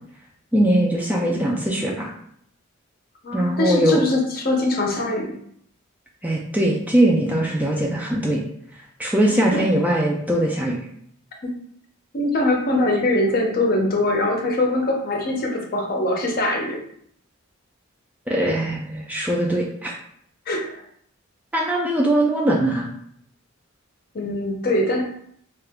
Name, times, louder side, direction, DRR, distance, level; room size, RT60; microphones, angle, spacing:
voice 1, 0.5-2.1 3.3-4.0 6.2-8.4 9.0-10.8 18.3-19.9 21.5-22.9, right 1 dB, 10° right, -2 dB, 0.3 m, -21 dB
voice 2, 3.2-5.3 9.5-9.6 11.4-11.5 12.1-16.8 20.5-20.7 24.1-25.0, left 1 dB, 45° left, 1 dB, 0.6 m, -22 dB
2.8 x 2.3 x 3.4 m, 0.67 s
head